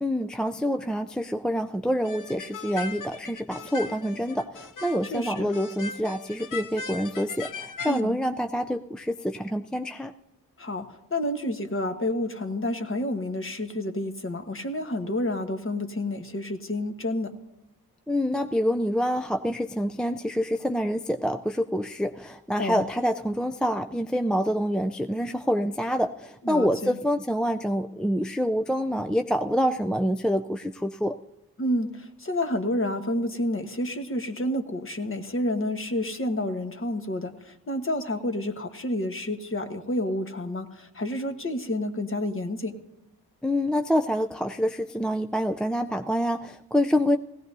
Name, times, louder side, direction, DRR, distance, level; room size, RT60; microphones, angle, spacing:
voice 1, 0.0-10.1 18.1-31.1 43.4-47.2, equal, ahead, 6 dB, 0.4 m, -26 dB
sound 1, 2.0-8.0, left 4 dB, 55° left, 0.7 m, -39 dB
voice 2, 5.1-5.5 7.8-8.2 10.6-17.3 22.6-22.9 26.4-26.9 31.6-42.7, left 1 dB, 35° left, 6 dB, 1.3 m, -29 dB
18.0 x 16.5 x 2.7 m, 0.93 s
wide cardioid pair, 85°, 38 cm